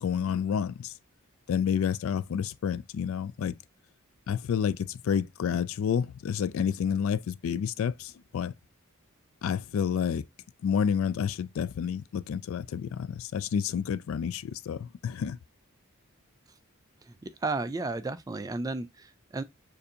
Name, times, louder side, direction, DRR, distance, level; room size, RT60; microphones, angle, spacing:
voice 1, 0.0-0.9 1.5-3.5 4.3-8.5 9.4-10.2 10.6-15.4, left 7 dB, 70° left, 0.3 m, -29 dB
voice 2, 17.0-19.4, right 3 dB, 15° right, 0.3 m, -33 dB
6.6 x 2.6 x 2.7 m
head